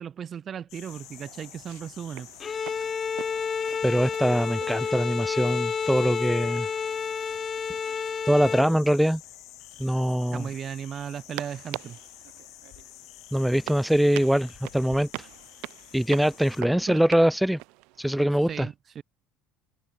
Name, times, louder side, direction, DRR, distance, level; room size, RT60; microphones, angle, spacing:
voice 1, 0.0-2.3 10.3-12.0 16.6-17.0 18.5-19.0, right 8 dB, 45° right, 2.6 m, -36 dB
sound 1, 0.7-16.6, left 18 dB, 65° left, 1.5 m, -48 dB
sound 2, 0.8-18.3, right 26 dB, 70° right, 6.0 m, -45 dB
Bowed string instrument, 2.4-8.8, left 6 dB, 35° left, 1.0 m, -30 dB
voice 2, 3.8-6.7 8.3-9.2 9.8-10.5 13.3-15.3 15.9-17.6 18.0-18.7, equal, 5° right, 0.5 m, -23 dB
hypercardioid pair, 75°, 0 cm